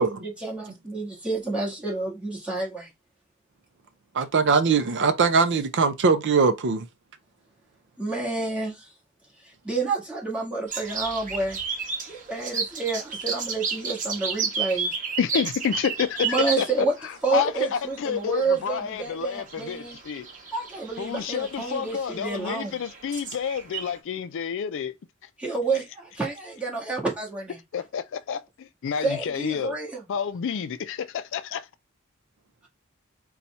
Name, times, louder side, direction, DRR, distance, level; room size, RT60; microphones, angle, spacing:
voice 1, 0.0-2.9 8.0-8.9 9.6-11.6 12.0-14.9 16.2-16.9 17.2-20.0 20.5-22.8 25.4-27.6 29.0-30.0, right 3 dB, 5° right, 1.6 m, -29 dB
voice 2, 4.1-6.9, right 5 dB, 55° right, 0.5 m, -21 dB
sound 1, 10.7-24.0, right 5 dB, 40° right, 1.0 m, -33 dB
voice 3, 15.2-20.3 21.0-24.9 27.7-29.8 30.1-31.7, left 7 dB, 60° left, 0.4 m, -29 dB
4.1 x 2.3 x 4.2 m
head